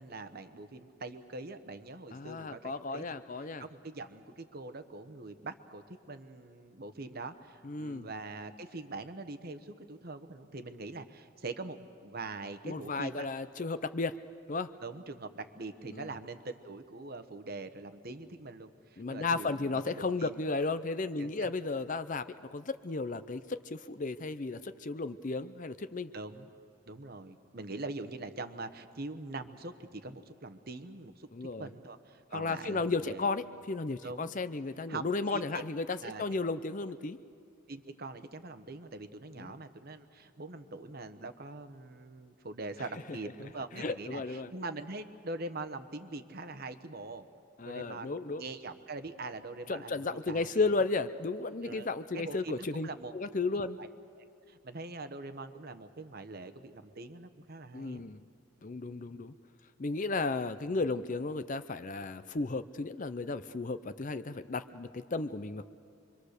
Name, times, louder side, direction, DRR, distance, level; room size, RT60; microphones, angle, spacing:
voice 1, 0.0-3.0 3.6-13.3 14.8-20.4 21.2-21.5 26.1-26.5 26.9-33.3 34.0-34.3 34.9-35.6 36.0-36.2 37.7-47.3 47.6-50.7 51.6-51.9 52.1-53.1 53.5-53.9 54.2-58.0, right 3 dB, 45° right, 9 dB, 1.0 m, -43 dB
voice 2, 2.1-3.6 7.6-8.1 12.6-14.1 14.5-14.7 15.9-16.1 19.0-22.2 22.5-26.1 31.3-31.7 32.3-37.2 39.4-39.5 43.8-44.5 47.6-48.4 49.7-53.8 57.7-58.2 58.6-59.3 59.8-65.6, left 3 dB, 35° left, 12 dB, 0.6 m, -34 dB
26.0 x 24.0 x 6.6 m, 2.4 s
head